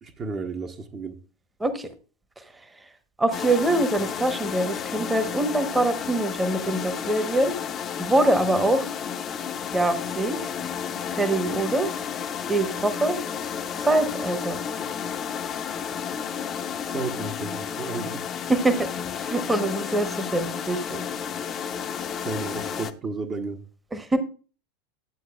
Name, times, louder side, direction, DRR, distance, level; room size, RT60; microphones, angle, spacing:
voice 1, 0.0-1.2 16.8-18.2 22.1-23.6, right 3 dB, 30° right, 1.0 m, -33 dB
voice 2, 3.2-7.6 8.0-8.9 9.7-10.4 11.1-11.9 12.5-13.2 13.8-14.6 18.5-18.7 19.1-21.0 23.9-24.2, right 2 dB, 10° right, 1.0 m, -24 dB
sound 1, 3.3-22.9, left 7 dB, 30° left, 0.7 m, -32 dB
11.5 x 8.0 x 2.4 m
figure-of-eight pair, 85°, 0 cm